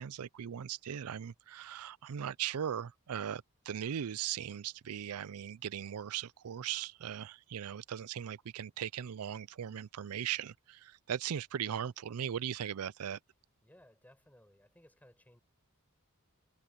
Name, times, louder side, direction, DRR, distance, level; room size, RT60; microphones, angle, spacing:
voice 1, 0.0-13.2, right 9 dB, 80° right, 0.4 m, -39 dB
voice 2, 13.6-15.4, left 1 dB, 5° left, 7.9 m, -61 dB
head